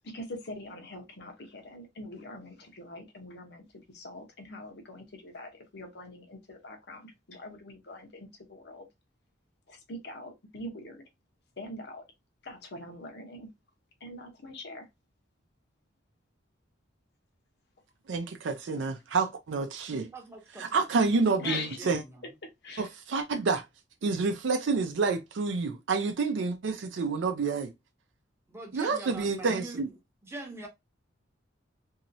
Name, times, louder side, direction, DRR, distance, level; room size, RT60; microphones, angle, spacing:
voice 1, 0.0-8.9 9.7-11.1 11.6-12.0 12.4-13.5 14.0-14.9 21.4-21.8 22.4-22.9, left 2 dB, 60° left, 0.8 m, -43 dB
voice 2, 18.1-20.1 20.6-22.0 22.8-23.7 24.0-27.7 28.7-29.9, right 4 dB, 75° right, 0.5 m, -28 dB
voice 3, 20.1-22.1 28.5-29.8 30.2-30.7, right 2 dB, 15° right, 0.7 m, -44 dB
3.0 x 2.7 x 2.6 m
head